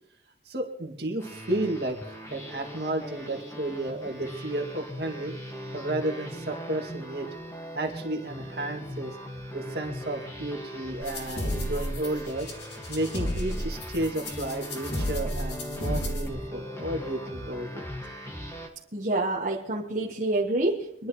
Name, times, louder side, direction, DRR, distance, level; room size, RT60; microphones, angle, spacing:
voice 1, 0.5-5.3 5.7-7.3 7.7-9.2 9.5-12.5 12.9-17.9, right 1 dB, 60° right, 1 dB, 2.2 m, -32 dB
sound 1, 1.2-18.7, equal, 15° left, 1.7 m, -40 dB
sound 2, 11.0-16.3, equal, 65° left, 2.2 m, -32 dB
voice 2, 18.9-21.1, right 2 dB, 40° right, -3 dB, 1.3 m, -27 dB
26.5 x 11.0 x 3.1 m, 0.73 s
head